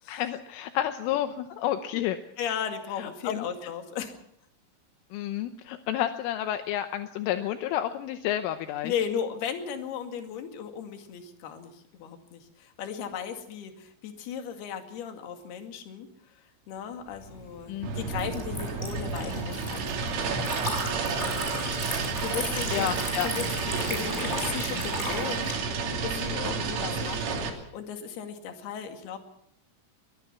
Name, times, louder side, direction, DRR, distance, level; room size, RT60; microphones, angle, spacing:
voice 1, 0.1-2.2 3.0-3.5 5.1-8.9 17.7-17.9 22.7-23.3, left 12 dB, 80° left, 8 dB, 3.4 m, -30 dB
voice 2, 2.4-4.2 8.8-16.1 16.4-20.5 22.2-29.2, left 8 dB, 60° left, 5 dB, 3.9 m, -36 dB
Liquid, 17.2-25.5, equal, 10° left, 6.6 m, -36 dB
sound 1, 17.8-27.5, right 4 dB, 75° right, 5.4 m, -31 dB
22.5 x 19.5 x 5.8 m, 0.71 s
omnidirectional pair, 5.8 m